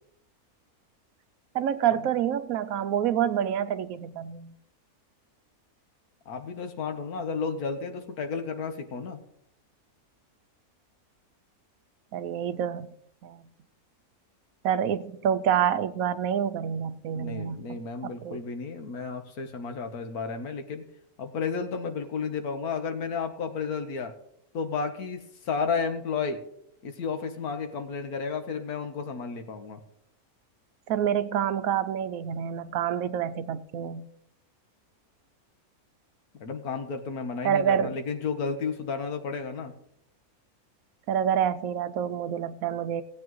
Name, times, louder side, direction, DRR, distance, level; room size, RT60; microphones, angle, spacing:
voice 1, 1.5-4.5 12.1-12.9 13.2-13.4 14.6-18.4 30.9-34.1 37.4-38.0 41.1-43.0, right 9 dB, 75° right, 1.0 m, -27 dB
voice 2, 6.3-9.2 17.1-20.8 21.2-24.1 24.5-26.4 26.8-29.8 36.4-39.7, left 5 dB, 80° left, 1.6 m, -32 dB
17.5 x 8.4 x 3.1 m
omnidirectional pair, 1.6 m